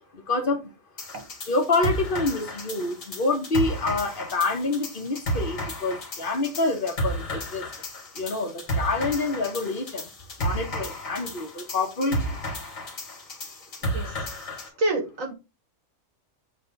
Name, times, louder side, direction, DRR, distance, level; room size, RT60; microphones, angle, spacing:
voice 1, 0.1-0.7 1.5-7.7 8.1-10.1 10.4-12.4, left 3 dB, 45° left, 1.3 m, -27 dB
sound 1, 1.0-14.7, equal, 85° left, 2.0 m, -33 dB
voice 2, 13.8-14.3 14.8-15.3, right 2 dB, 80° right, 2.1 m, -28 dB
7.6 x 3.3 x 3.9 m
omnidirectional pair, 1.4 m